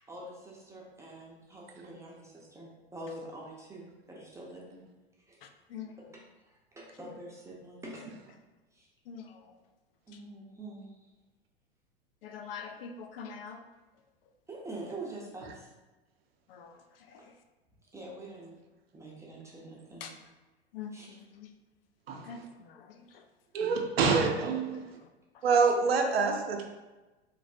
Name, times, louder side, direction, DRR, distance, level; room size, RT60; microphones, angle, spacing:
voice 1, 0.1-4.8 5.3-5.4 6.0-8.1 8.7-8.9 10.1-11.1 14.5-15.7 17.9-18.6 18.9-20.1 20.9-21.1 23.6-23.8, right 1 dB, 10° right, -4 dB, 0.4 m, -45 dB
voice 2, 5.4-5.9 9.1-9.6 10.1-10.2 12.2-13.6 16.5-17.3 20.0-20.1 20.7-21.5 22.2-23.2 24.7-24.9 25.3-25.4, left 6 dB, 65° left, 5 dB, 0.5 m, -45 dB
voice 3, 23.5-24.8 25.4-26.6, right 4 dB, 75° right, 3 dB, 0.5 m, -26 dB
3.2 x 2.5 x 2.5 m, 1.1 s
figure-of-eight pair, 90°, 31 cm